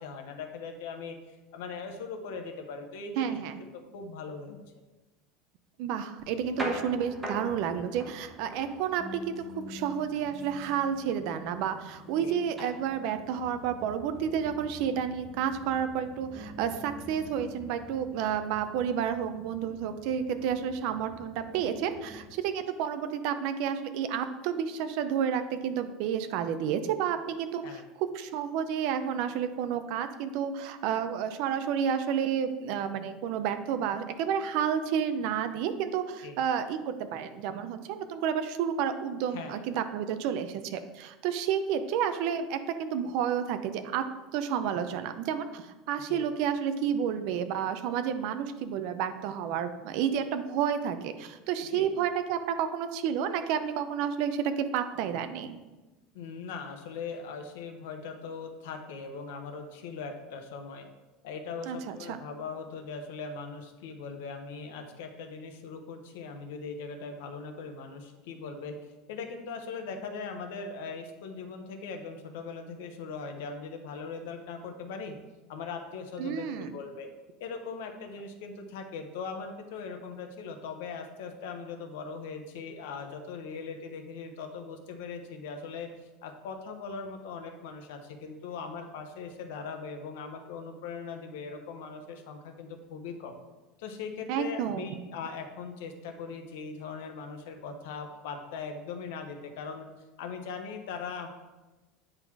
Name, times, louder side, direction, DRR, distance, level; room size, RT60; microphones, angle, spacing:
voice 1, 0.0-4.6 12.2-12.4 27.6-27.8 36.2-36.4 39.3-39.6 46.1-46.2 51.7-51.9 56.1-60.9 61.2-68.8 69.1-75.2 75.5-77.1 77.4-93.4 93.8-99.9 100.2-101.3, left 5 dB, 75° left, 5 dB, 1.0 m, -40 dB
voice 2, 3.2-3.6 5.8-44.0 44.3-55.6 61.7-62.2 76.2-76.7 94.3-95.0, right 8 dB, 50° right, 9 dB, 0.5 m, -30 dB
sound 1, 6.2-22.3, equal, 10° right, 1.0 m, -44 dB
8.9 x 4.0 x 4.6 m, 1.1 s
cardioid pair, 175°, 0 cm